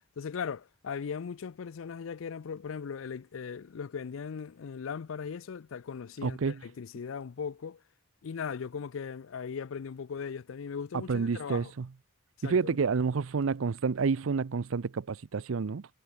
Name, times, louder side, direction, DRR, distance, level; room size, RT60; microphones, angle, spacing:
voice 1, 0.2-7.8 8.2-11.7 12.4-12.8, left 6 dB, 75° left, 0.4 m, -38 dB
voice 2, 6.2-6.6 10.9-11.9 12.4-15.9, right 5 dB, 75° right, 0.5 m, -29 dB
head